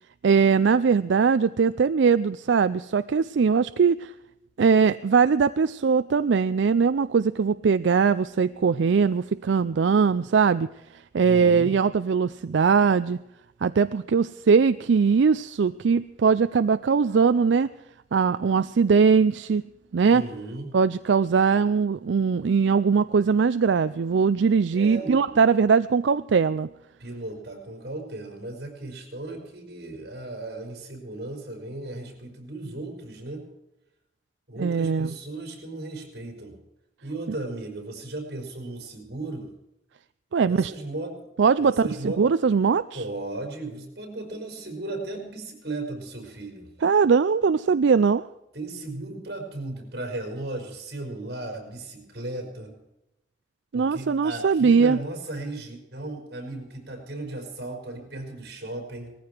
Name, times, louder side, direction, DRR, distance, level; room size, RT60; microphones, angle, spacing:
voice 1, 0.2-4.1 4.6-10.7 11.1-13.2 13.6-17.7 18.1-19.6 19.9-20.3 20.7-26.7 34.6-35.2 40.3-40.7 41.4-41.8 42.2-43.0 46.8-48.3 53.7-55.0, right 5 dB, 85° right, 14 dB, 0.4 m, -21 dB
voice 2, 11.2-11.8 20.1-20.7 24.7-25.2 27.0-33.5 34.5-36.6 37.0-39.5 40.5-41.2 41.6-42.3 42.9-46.7 48.5-52.8 53.7-59.1, right 2 dB, 60° right, 4 dB, 4.9 m, -36 dB
19.0 x 14.5 x 4.5 m, 0.90 s
head